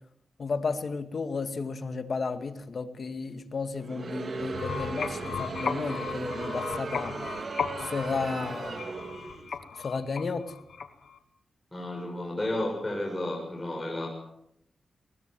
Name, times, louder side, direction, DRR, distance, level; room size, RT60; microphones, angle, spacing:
voice 1, 0.4-7.1 7.8-8.8 9.8-10.5, left 4 dB, 60° left, 9 dB, 2.0 m, -33 dB
Crowd, 3.8-9.5, right 4 dB, 55° right, 2.7 m, -37 dB
sound 1, 4.4-11.2, left 6 dB, 75° left, 2.2 m, -36 dB
voice 2, 11.7-14.1, left 1 dB, 20° left, -1 dB, 7.1 m, -32 dB
21.5 x 20.0 x 7.7 m, 0.79 s
cardioid pair, 60°, 0 cm